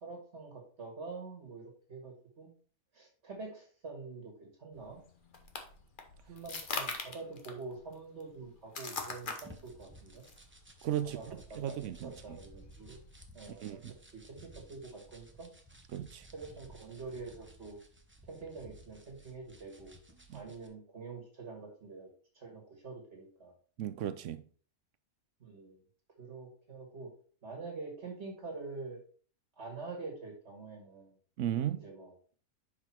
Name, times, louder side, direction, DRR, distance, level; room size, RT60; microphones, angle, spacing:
voice 1, 0.0-2.5 2.9-5.0 6.2-10.2 11.0-13.0 13.3-13.8 14.1-15.5 16.3-17.8 18.2-20.0 20.3-22.1 22.3-23.5 25.4-25.8 26.2-27.1 27.4-29.0 29.6-31.1 31.8-32.1, right 3 dB, 50° right, 1.8 m, -46 dB
sound 1, 4.7-13.3, left 4 dB, 40° left, 1.0 m, -44 dB
sound 2, 8.9-20.7, right 1 dB, 10° right, 0.6 m, -56 dB
voice 2, 10.8-12.4 13.6-13.9 15.9-16.3 20.3-20.4 23.8-24.4 31.4-31.9, right 11 dB, 70° right, 0.8 m, -36 dB
5.9 x 4.9 x 4.4 m
omnidirectional pair, 1.5 m